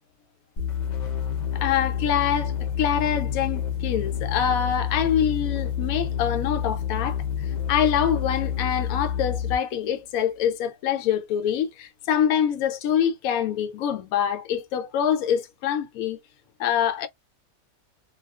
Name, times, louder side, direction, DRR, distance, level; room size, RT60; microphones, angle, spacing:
sound 1, 0.6-9.7, left 8 dB, 60° left, 0.4 m, -28 dB
voice 1, 1.5-16.2 16.6-17.1, left 9 dB, 80° left, 1.0 m, -25 dB
2.3 x 2.2 x 2.3 m
omnidirectional pair, 1.5 m